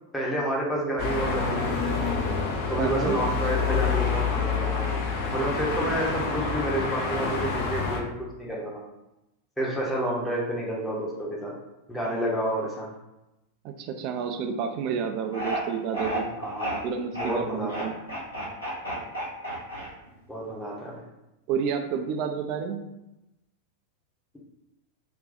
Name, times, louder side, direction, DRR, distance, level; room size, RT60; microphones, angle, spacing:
voice 1, 0.1-1.8 2.7-5.0 5.3-8.8 9.6-11.6 11.9-12.9 16.4-16.8 17.1-18.0 20.3-21.0, right 1 dB, 5° left, -4 dB, 0.8 m, -29 dB
sound 1, 1.0-8.0, left 4 dB, 45° left, 0.5 m, -27 dB
voice 2, 2.8-3.1 13.6-16.3 16.8-17.9 21.5-22.8, right 6 dB, 40° right, 5 dB, 0.4 m, -30 dB
sound 2, 15.3-15.6 15.9-16.8 17.1-17.3 17.7-20.2, right 1 dB, 75° left, 1.0 m, -31 dB
2.6 x 2.3 x 3.9 m, 0.93 s
figure-of-eight pair, 90°, 0 cm